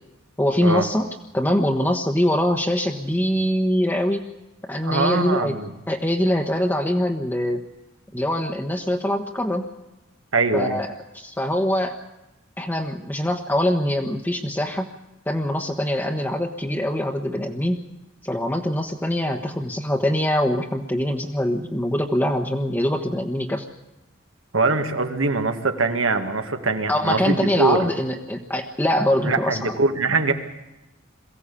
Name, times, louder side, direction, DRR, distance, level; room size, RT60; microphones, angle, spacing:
voice 1, 0.4-1.1 1.3-4.3 4.6-5.6 5.9-7.6 8.1-9.7 10.5-10.9 11.1-12.0 12.6-14.9 15.3-17.8 18.2-23.7 26.9-29.8, left 1 dB, 10° left, 1 dB, 1.2 m, -23 dB
voice 2, 4.8-5.7 10.3-10.8 24.5-27.9 29.2-30.3, right 3 dB, 85° right, 6 dB, 2.2 m, -22 dB
23.0 x 15.5 x 8.5 m, 0.96 s
head